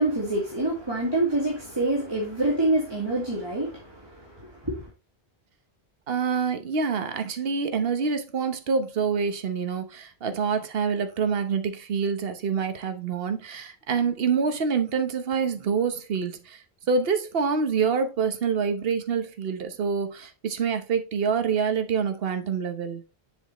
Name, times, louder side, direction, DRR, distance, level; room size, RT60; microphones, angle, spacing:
voice 1, 0.0-4.9, right 2 dB, 25° right, 2.1 m, -26 dB
voice 2, 6.1-23.0, right 5 dB, 65° right, 1.2 m, -26 dB
7.4 x 7.2 x 3.0 m
omnidirectional pair, 1.1 m